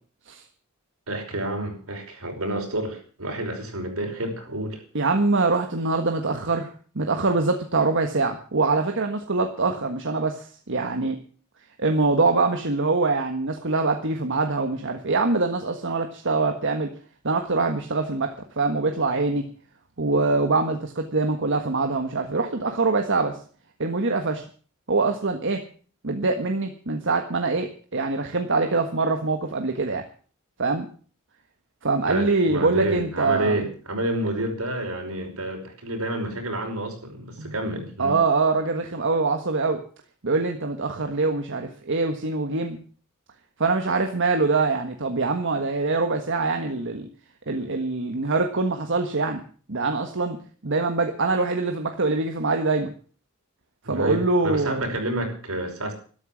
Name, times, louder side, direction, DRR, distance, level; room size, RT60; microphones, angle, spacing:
voice 1, 1.1-4.8 32.1-38.1 53.8-55.9, right 1 dB, 80° right, 3 dB, 5.5 m, -29 dB
voice 2, 4.9-11.2 11.8-16.9 17.2-19.5 20.0-23.4 23.8-24.4 24.9-25.6 26.0-30.0 30.6-30.9 31.8-33.6 37.4-37.5 38.0-39.8 40.2-42.8 43.6-47.1 47.5-49.4 49.7-52.9 53.8-54.9, right 3 dB, 60° right, 5 dB, 1.5 m, -24 dB
13.0 x 12.5 x 7.4 m, 0.43 s
head